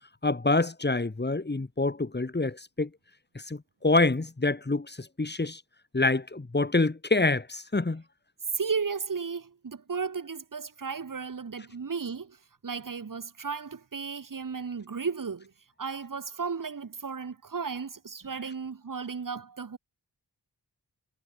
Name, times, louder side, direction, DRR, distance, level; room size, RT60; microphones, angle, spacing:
voice 1, 0.2-2.9 3.3-5.6 5.9-8.0, left 3 dB, 25° left, 2.0 m, -26 dB
voice 2, 8.5-12.4 12.6-15.5 15.8-19.8, right 5 dB, 50° right, 1.8 m, -34 dB
wide cardioid pair, 80°, 40 cm